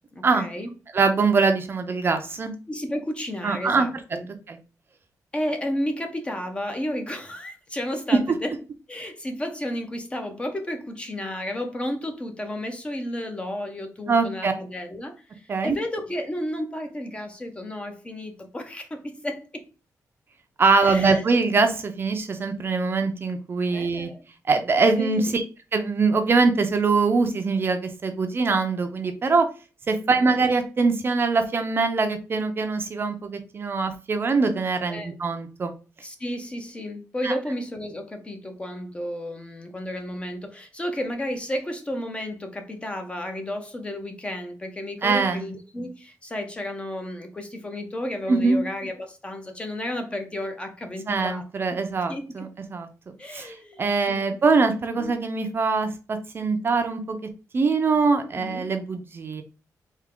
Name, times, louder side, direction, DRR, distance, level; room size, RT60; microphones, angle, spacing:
voice 1, 0.1-0.7 2.7-4.3 5.3-8.5 8.9-19.6 20.8-21.3 23.7-24.2 25.0-25.4 30.0-30.3 34.9-35.2 36.0-51.7 52.1-52.5 53.2-54.4 54.9-55.1 58.2-58.7, left 1 dB, 15° left, 0.5 m, -32 dB
voice 2, 0.9-2.5 3.4-3.9 4.5-4.6 14.1-14.5 15.5-15.8 20.6-24.1 24.5-25.4 25.7-29.5 29.9-35.7 37.2-37.3 45.0-45.5 48.3-48.6 51.1-52.9 53.3-57.2 57.5-59.4, right 4 dB, 35° right, 0.5 m, -23 dB
3.4 x 2.8 x 3.6 m
wide cardioid pair, 160°, 6 cm